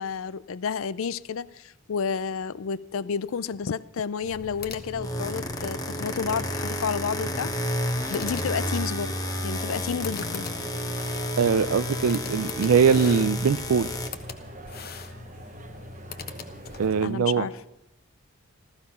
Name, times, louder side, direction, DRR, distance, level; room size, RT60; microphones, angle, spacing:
voice 1, 0.0-7.5 8.1-9.1 9.4-10.5 17.0-17.6, left 6 dB, 75° left, 0.5 m, -31 dB
sound 1, 4.2-17.2, left 3 dB, 45° left, 1.0 m, -41 dB
sound 2, 4.8-14.1, left 1 dB, 15° left, 1.1 m, -31 dB
sound 3, 8.0-17.0, right 2 dB, 35° right, 0.8 m, -46 dB
voice 2, 11.4-13.9 16.8-17.5, right 6 dB, 80° right, 0.4 m, -22 dB
14.5 x 14.0 x 5.7 m
head